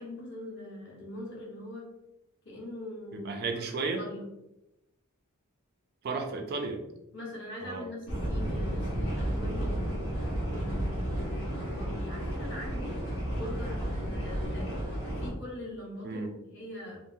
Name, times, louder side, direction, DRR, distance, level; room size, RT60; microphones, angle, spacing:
voice 1, 0.0-1.9 2.4-3.4 3.8-4.3 7.1-10.2 10.5-12.9 13.4-14.7 15.2-17.0, left 1 dB, 50° left, -4 dB, 1.1 m, -42 dB
voice 2, 3.1-4.0 6.0-6.8 7.6-7.9 16.0-16.3, right 4 dB, 45° right, 4 dB, 0.3 m, -33 dB
sound 1, 8.1-15.3, right 1 dB, 85° left, 1.1 m, -32 dB
3.4 x 2.0 x 2.6 m, 0.91 s
head